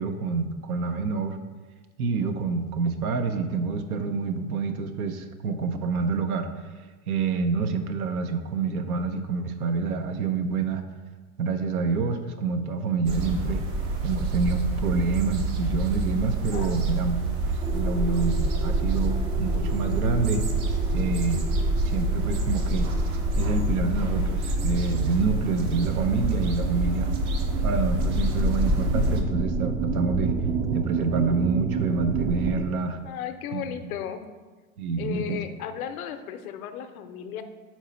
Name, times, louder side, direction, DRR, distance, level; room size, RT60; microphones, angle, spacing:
voice 1, 0.0-1.4 2.0-6.5 7.1-10.8 11.4-13.6 14.0-17.2 17.5-20.5 20.9-21.4 21.8-22.9 23.4-27.1 27.6-30.3 30.7-33.0 33.5-33.9 34.8-35.4, right 4 dB, 80° right, 7 dB, 0.8 m, -27 dB
sound 1, 13.1-29.2, right 3 dB, 60° right, 1.0 m, -28 dB
voice 2, 16.5-16.8 33.0-34.2 35.0-37.4, left 9 dB, 75° left, 8 dB, 0.7 m, -35 dB
sound 2, 17.6-32.7, right 1 dB, 20° right, 0.4 m, -29 dB
4.5 x 4.1 x 5.6 m, 1.4 s
hypercardioid pair, 90°, 43 cm